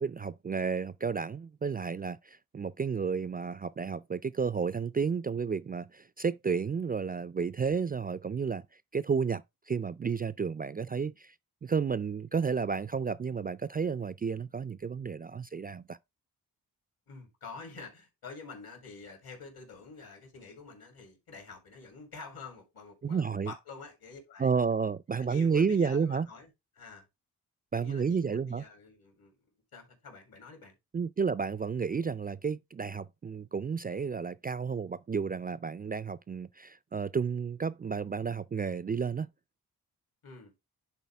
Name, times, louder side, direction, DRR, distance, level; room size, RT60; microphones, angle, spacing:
voice 1, 0.0-8.6 8.9-11.3 11.6-16.0 23.0-23.5 24.4-26.3 27.7-28.6 30.9-39.3, right 5 dB, 25° right, 0.3 m, -31 dB
voice 2, 17.1-24.5 25.1-26.5 26.8-27.1 27.7-29.3 29.7-30.8 40.2-40.5, left 4 dB, 75° left, 3.5 m, -48 dB
10.5 x 3.9 x 3.4 m
cardioid pair, 55°, 37 cm